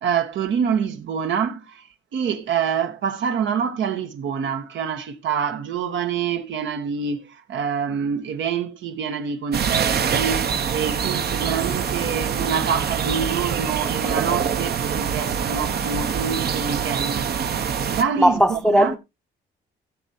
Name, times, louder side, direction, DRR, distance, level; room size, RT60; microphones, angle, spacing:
voice 1, 0.0-1.9 2.1-17.3 17.9-19.0, right 7 dB, 70° right, 1.2 m, -26 dB
sound 1, 9.5-18.0, right 7 dB, 55° right, 0.9 m, -24 dB
voice 2, 18.2-19.0, equal, 5° left, 0.7 m, -17 dB
16.0 x 7.7 x 2.8 m
cardioid pair, 90°, 20 cm